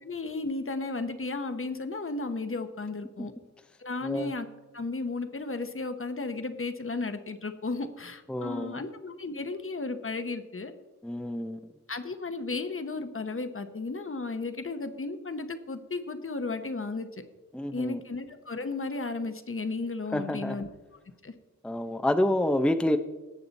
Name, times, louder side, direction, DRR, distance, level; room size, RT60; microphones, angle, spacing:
voice 1, 0.0-3.3 3.8-4.5 4.7-10.7 11.9-17.2 17.7-20.7 21.2-21.3, left 3 dB, 45° left, 9 dB, 1.0 m, -34 dB
voice 2, 8.3-8.8 11.0-11.7 17.5-18.0 20.1-20.6 21.6-23.0, left 1 dB, 5° left, 8 dB, 0.5 m, -28 dB
17.5 x 6.7 x 4.1 m, 1.2 s
wide cardioid pair, 80°, 29 cm